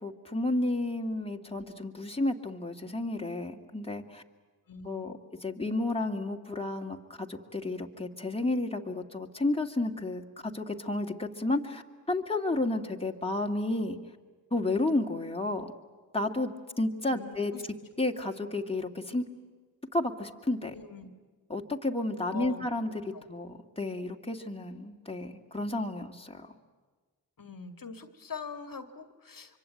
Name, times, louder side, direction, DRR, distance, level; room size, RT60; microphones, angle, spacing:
voice 1, 0.0-4.2 4.8-14.0 14.5-15.7 16.1-17.5 18.0-19.3 19.9-20.7 21.5-26.5, left 2 dB, 10° left, 2 dB, 2.4 m, -32 dB
voice 2, 4.7-5.2 17.0-17.6 20.7-21.1 22.3-22.6 23.1-23.2 27.4-29.6, left 5 dB, 45° left, 9 dB, 2.2 m, -43 dB
25.0 x 24.0 x 9.2 m, 1.4 s
supercardioid pair, 45°, 46 cm